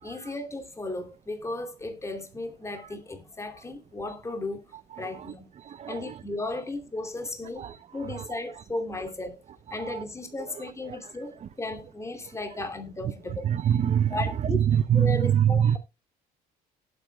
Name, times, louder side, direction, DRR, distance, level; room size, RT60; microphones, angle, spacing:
voice 1, 0.0-4.7 5.0-5.5 5.9-9.4 9.7-13.5 14.1-14.6 14.9-15.8, left 2 dB, 15° left, 2.7 m, -35 dB
voice 2, 4.9-6.2 7.6-7.8 8.0-8.6 9.7-10.0 10.5-11.1 11.4-11.5 12.6-12.7 13.0-13.1 13.4-15.8, right 9 dB, 40° right, 0.7 m, -26 dB
18.0 x 8.1 x 2.2 m
cardioid pair, 110°, 17 cm